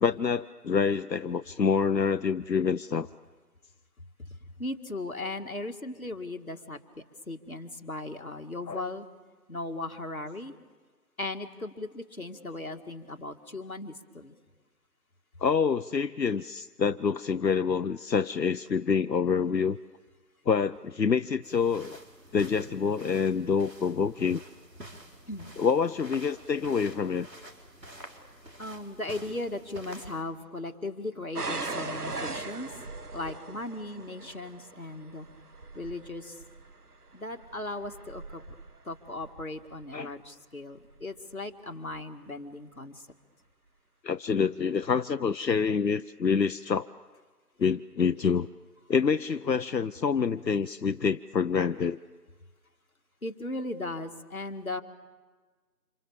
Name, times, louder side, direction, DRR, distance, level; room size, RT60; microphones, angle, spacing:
voice 1, 0.0-3.1 8.7-8.8 15.4-19.8 20.5-22.0 22.3-24.4 25.6-27.3 39.9-40.2 44.0-46.9 47.6-48.5 48.9-52.0, left 6 dB, 85° left, 11 dB, 0.9 m, -27 dB
voice 2, 4.2-9.1 9.5-10.5 11.2-14.3 25.3-25.5 28.6-32.8 33.1-35.3 35.7-36.4 37.1-38.4 38.8-43.1 53.2-54.8, left 2 dB, 55° left, 5 dB, 2.2 m, -37 dB
sound 1, 21.4-30.2, right 1 dB, 80° right, 4.4 m, -49 dB
sound 2, 31.3-40.1 40.9-41.3 41.9-42.0, right 3 dB, 65° right, 1.2 m, -40 dB
29.0 x 27.5 x 7.2 m, 1.4 s
figure-of-eight pair, 175°, 49 cm